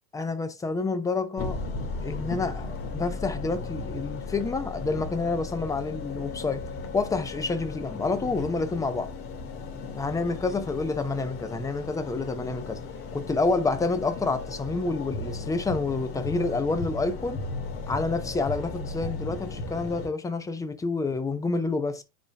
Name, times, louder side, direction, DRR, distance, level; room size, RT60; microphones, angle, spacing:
voice 1, 0.1-1.6 2.0-6.6 6.9-9.1 9.9-12.8 13.1-17.4 17.9-22.0, left 3 dB, 5° left, 0.8 m, -28 dB
sound 1, 1.4-20.1, left 3 dB, 30° left, 1.9 m, -36 dB
9.7 x 4.3 x 2.3 m
hypercardioid pair, 110°, 46 cm